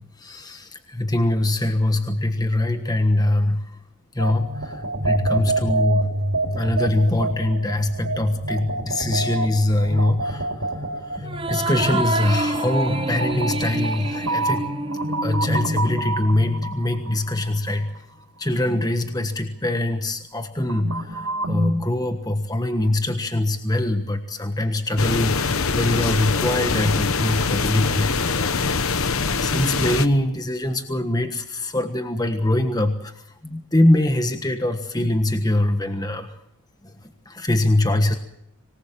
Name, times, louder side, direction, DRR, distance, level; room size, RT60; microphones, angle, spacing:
voice 1, 0.0-3.8 4.1-6.1 6.5-14.7 15.2-18.1 18.4-36.3 36.8-38.1, left 1 dB, 15° left, 7 dB, 1.3 m, -23 dB
sound 1, 4.2-17.9 20.6-21.7, right 2 dB, 90° right, 4.7 m, -27 dB
sound 2, 11.2-16.0, right 2 dB, 25° right, 1.0 m, -28 dB
sound 3, 25.0-30.1, left 4 dB, 70° left, 1.1 m, -23 dB
25.5 x 19.5 x 7.4 m, 0.78 s
head